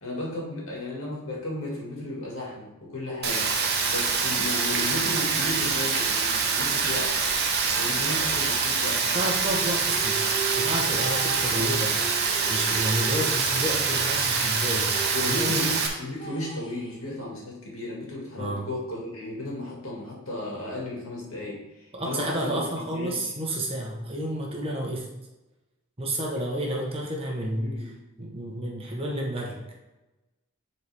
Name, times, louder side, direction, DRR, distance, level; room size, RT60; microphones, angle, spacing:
voice 1, 0.0-3.5 3.9-7.1 7.6-9.1 11.4-11.7 15.1-23.2 27.6-27.9, left 1 dB, 75° left, -3 dB, 2.2 m, -34 dB
Rain, 3.2-15.9, right 5 dB, 50° right, 1.0 m, -25 dB
voice 2, 9.1-10.2 10.6-11.9 12.5-15.7 18.4-18.7 21.9-25.1 26.0-27.9 28.2-29.6, right 1 dB, 25° right, -1 dB, 1.1 m, -30 dB
sound 1, 9.5-14.0 14.3-14.4 14.7-17.3, right 4 dB, 20° left, 0.9 m, -38 dB
10.0 x 4.2 x 3.5 m, 1.0 s
head